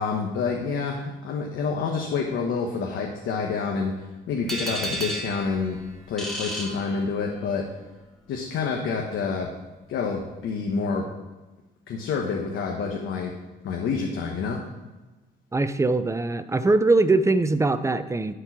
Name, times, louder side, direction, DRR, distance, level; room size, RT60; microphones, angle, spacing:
voice 1, 0.0-3.9 4.3-5.8 6.1-7.6 8.3-9.5 9.9-11.1 11.9-13.3 13.6-14.6, left 5 dB, 80° left, 0 dB, 1.2 m, -28 dB
sound 1, 4.5-7.5, right 1 dB, ahead, 1.8 m, -33 dB
voice 2, 15.5-18.3, right 3 dB, 15° right, 11 dB, 0.6 m, -22 dB
11.5 x 4.5 x 6.0 m, 1.2 s
cardioid pair, 90°, 20 cm